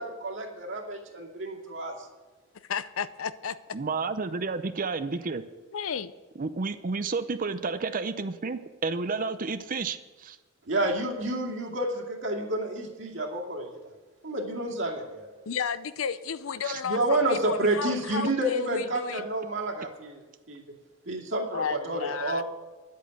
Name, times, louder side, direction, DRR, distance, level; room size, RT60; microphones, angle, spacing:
voice 1, 0.0-1.9 10.7-13.8 14.2-15.3 16.8-20.2 20.5-20.6 21.1-22.4, right 1 dB, 65° right, 0 dB, 2.4 m, -29 dB
voice 2, 2.7-3.6 5.7-6.1 15.5-19.2 21.5-22.4, left 7 dB, 85° left, 15 dB, 0.6 m, -33 dB
voice 3, 3.7-5.4 6.4-10.4 16.6-16.8, right 4 dB, 40° right, 10 dB, 0.6 m, -31 dB
11.0 x 8.4 x 7.8 m, 1.3 s
head